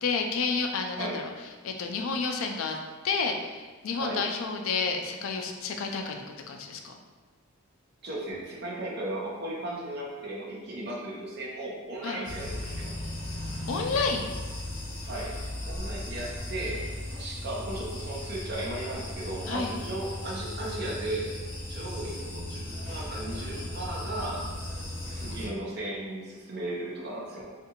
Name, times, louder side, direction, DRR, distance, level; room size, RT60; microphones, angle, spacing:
voice 1, 0.0-1.3 1.6-2.8 3.0-6.9 12.0-12.2 13.7-14.3 19.5-19.8, left 4 dB, 65° left, 3 dB, 0.4 m, -30 dB
voice 2, 8.0-12.9 15.0-15.3 15.7-21.4 21.7-24.5 25.1-27.5, right 1 dB, 45° right, -3 dB, 0.7 m, -36 dB
sound 1, 12.2-25.5, left 1 dB, 40° left, 0.8 m, -37 dB
3.6 x 2.5 x 2.8 m, 1.3 s
head